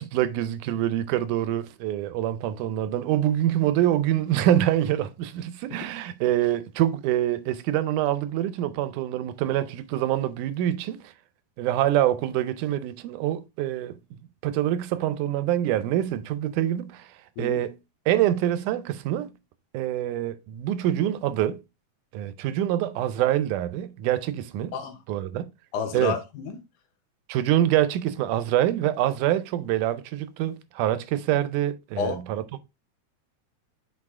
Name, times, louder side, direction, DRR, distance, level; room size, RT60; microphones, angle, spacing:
voice 1, 0.0-11.1 11.6-14.0 14.4-17.1 17.4-17.8 18.1-19.3 19.7-21.6 22.1-24.7 25.1-25.4 25.9-26.2 27.3-32.4, right 12 dB, 85° right, 2.2 m, -25 dB
voice 2, 25.7-26.6 32.0-32.2, left 6 dB, 90° left, 2.6 m, -30 dB
6.3 x 4.8 x 3.6 m
omnidirectional pair, 3.5 m